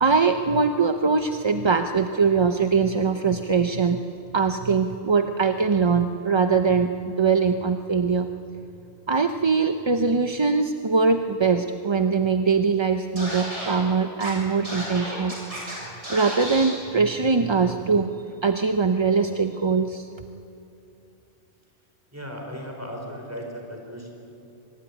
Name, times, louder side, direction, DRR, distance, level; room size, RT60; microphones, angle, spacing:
voice 1, 0.0-4.0 4.3-8.3 9.1-15.3 16.1-18.1 18.4-20.1, right 5 dB, 30° right, 7 dB, 0.6 m, -22 dB
Scratching (performance technique), 13.2-13.8 14.2-14.3 14.6-15.7 16.0-16.7, equal, 70° right, 7.1 m, -33 dB
voice 2, 22.1-24.2, equal, 10° right, 1 dB, 4.6 m, -36 dB
24.5 x 21.0 x 10.0 m, 2.7 s
omnidirectional pair, 1.2 m